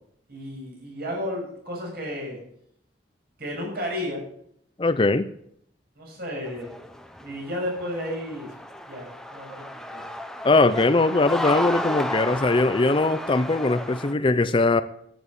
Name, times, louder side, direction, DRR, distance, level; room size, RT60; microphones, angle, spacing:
voice 1, 0.3-2.4 3.4-4.2 6.0-6.7 7.2-8.5 8.9-10.0, equal, 55° right, -1 dB, 6.6 m, -33 dB
voice 2, 4.8-5.3 10.4-14.8, left 3 dB, 30° left, 13 dB, 0.5 m, -21 dB
sound 1, 6.5-14.1, left 1 dB, 5° left, 0.8 m, -33 dB
12.5 x 9.4 x 6.9 m, 0.71 s
head